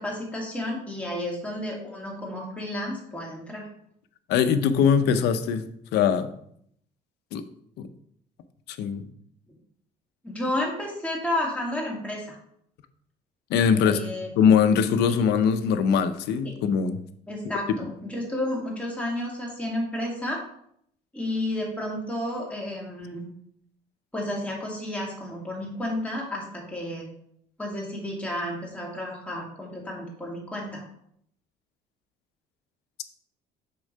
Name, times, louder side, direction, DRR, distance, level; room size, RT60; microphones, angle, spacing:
voice 1, 0.0-3.7 10.2-12.4 13.7-14.3 15.1-15.2 17.3-20.4 21.1-23.3 24.1-27.1 27.6-30.8, left 1 dB, 5° left, -2 dB, 2.4 m, -31 dB
voice 2, 4.3-5.6 5.9-6.3 7.3-7.4 7.8-7.9 8.7-9.1 13.5-14.0 14.4-17.0, left 7 dB, 85° left, 10 dB, 0.7 m, -21 dB
6.9 x 3.7 x 5.4 m, 0.68 s
cardioid pair, 110°, 17 cm